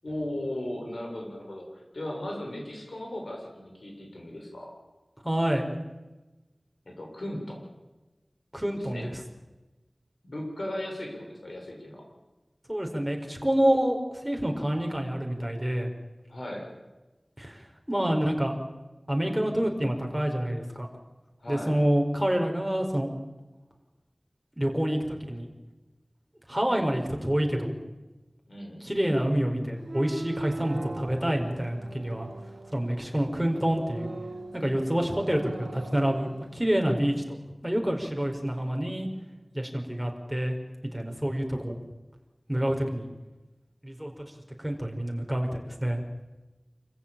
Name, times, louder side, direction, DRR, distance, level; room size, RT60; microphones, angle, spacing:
voice 1, 0.0-4.7 6.8-7.6 8.8-9.1 10.2-12.0 16.3-16.7 21.4-21.7 26.7-26.9 28.5-28.8, left 1 dB, 90° left, 0 dB, 6.8 m, -37 dB
voice 2, 5.2-5.6 8.5-9.1 12.7-14.0 14.2-15.9 17.4-18.5 19.1-20.9 21.5-23.1 24.6-25.5 26.5-27.7 28.8-32.3 32.7-34.1 34.5-37.4 37.6-39.1 39.5-40.5 40.9-41.8 42.5-43.1 43.8-44.3 44.6-46.0, right 1 dB, 5° right, 2 dB, 4.7 m, -27 dB
sound 1, 29.8-36.7, right 3 dB, 75° right, 1.1 m, -41 dB
26.5 x 15.0 x 9.0 m, 1.1 s
wide cardioid pair, 50°, 0 cm